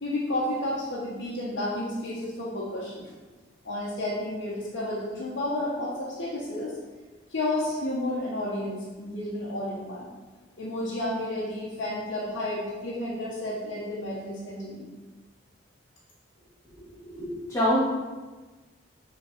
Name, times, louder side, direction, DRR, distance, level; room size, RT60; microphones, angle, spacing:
voice 1, 0.0-3.1 3.6-6.8 7.3-10.1 10.6-14.9, left 1 dB, 75° left, -8 dB, 1.2 m, -31 dB
voice 2, 16.8-17.8, equal, 15° left, -9 dB, 2.0 m, -27 dB
6.3 x 3.9 x 4.2 m, 1.3 s
head